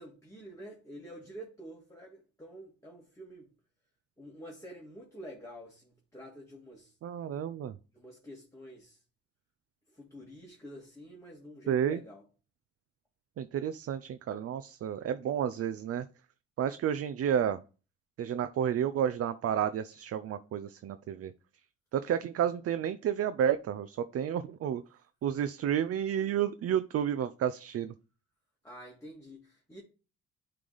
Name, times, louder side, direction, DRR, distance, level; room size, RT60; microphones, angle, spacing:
voice 1, 0.0-3.5 4.2-6.9 7.9-9.0 9.9-12.2 28.6-29.8, equal, 10° left, 1.9 m, -48 dB
voice 2, 7.0-7.7 11.7-12.0 13.4-16.0 16.6-17.6 18.2-21.3 21.9-24.8 25.2-27.9, right 9 dB, 50° right, 0.5 m, -31 dB
9.4 x 3.3 x 3.9 m
cardioid pair, 90°, 30 cm